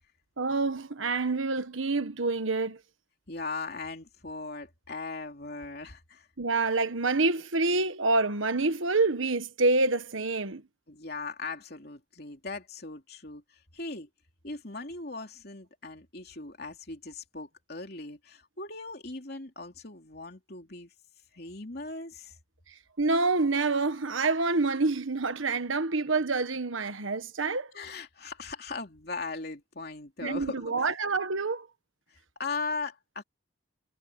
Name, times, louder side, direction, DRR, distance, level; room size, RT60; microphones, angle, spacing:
voice 1, 0.4-2.8 6.4-10.6 23.0-27.7 30.2-31.7, right 3 dB, 80° right, 1.5 m, -27 dB
voice 2, 3.3-6.3 10.9-14.1 14.4-20.9 21.3-22.4 27.7-30.6 32.1-33.2, left 3 dB, 50° left, 3.3 m, -39 dB
head